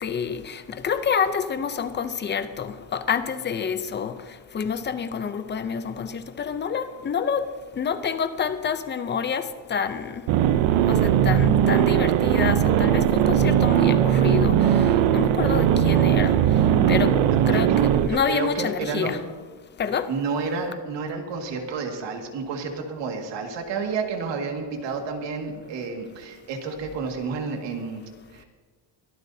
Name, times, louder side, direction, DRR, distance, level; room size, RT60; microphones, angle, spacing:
voice 1, 0.0-4.1 4.5-7.5 7.8-10.1 10.9-14.5 15.1-16.3 16.9-17.1 17.5-19.2 19.8-20.1, left 7 dB, 25° left, 0.6 m, -27 dB
sound 1, 10.3-18.1, right 10 dB, 85° right, 0.7 m, -19 dB
voice 2, 17.3-17.6 18.1-19.2 20.1-28.0 28.3-28.4, right 4 dB, 70° right, 2.1 m, -30 dB
22.5 x 13.5 x 2.8 m
cardioid pair, 155°, 44 cm